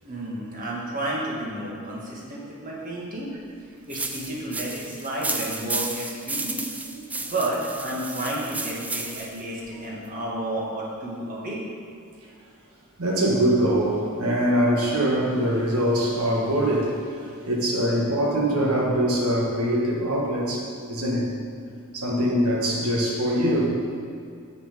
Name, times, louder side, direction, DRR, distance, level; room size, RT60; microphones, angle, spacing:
voice 1, 0.0-3.3 3.9-6.6 7.2-11.6, right 1 dB, 40° right, -4 dB, 1.9 m, -31 dB
sound 1, 3.9-9.4, right 2 dB, 5° right, 0.4 m, -32 dB
voice 2, 13.0-17.0 17.4-21.3 21.9-23.7, equal, 85° right, -2 dB, 1.6 m, -23 dB
8.2 x 6.6 x 5.2 m, 2.3 s
head